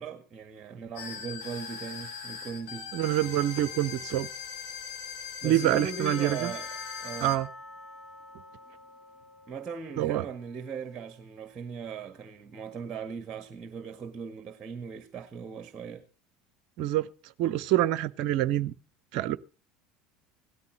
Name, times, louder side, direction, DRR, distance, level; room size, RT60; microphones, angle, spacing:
voice 1, 0.0-2.9 5.4-6.7 7.0-7.3 9.5-16.0, right 6 dB, 30° right, 1.6 m, -39 dB
sound 1, 1.0-7.4, left 6 dB, 60° left, 4.0 m, -40 dB
voice 2, 2.9-4.3 5.4-6.5 7.2-7.5 10.0-10.2 16.8-17.1 17.4-18.7 19.1-19.4, right 13 dB, 55° right, 0.7 m, -26 dB
Percussion / Church bell, 6.1-11.3, left 2 dB, 35° left, 2.3 m, -46 dB
17.0 x 13.5 x 4.0 m
figure-of-eight pair, 70°, 0 cm